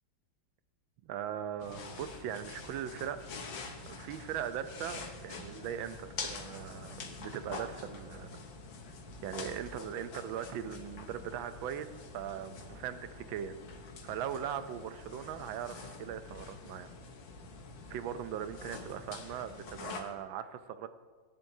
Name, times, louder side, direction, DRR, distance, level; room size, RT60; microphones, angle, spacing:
voice 1, 1.0-3.2 3.9-8.4 9.2-11.9 12.1-13.6 14.0-16.9 17.9-20.9, right 9 dB, 75° right, 11 dB, 1.3 m, -40 dB
sound 1, 1.6-20.0, left 4 dB, 65° left, 1.8 m, -46 dB
17.0 x 10.5 x 2.7 m, 1.5 s
omnidirectional pair, 2.3 m